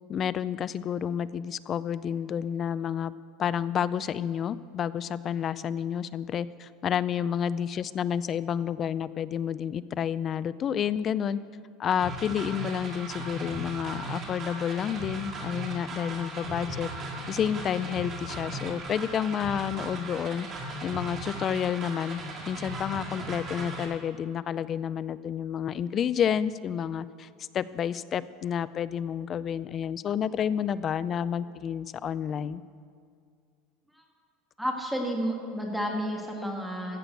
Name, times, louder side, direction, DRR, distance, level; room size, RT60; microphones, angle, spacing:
voice 1, 0.1-3.1 3.4-11.4 11.8-16.9 17.3-20.5 20.8-32.6, left 8 dB, 30° left, 17 dB, 0.3 m, -30 dB
sound 1, 12.0-23.9, right 2 dB, 30° right, 2.0 m, -37 dB
voice 2, 34.6-37.0, equal, ahead, 0 dB, 1.6 m, -31 dB
15.0 x 6.8 x 8.0 m, 2.2 s
cardioid pair, 155°, 0 cm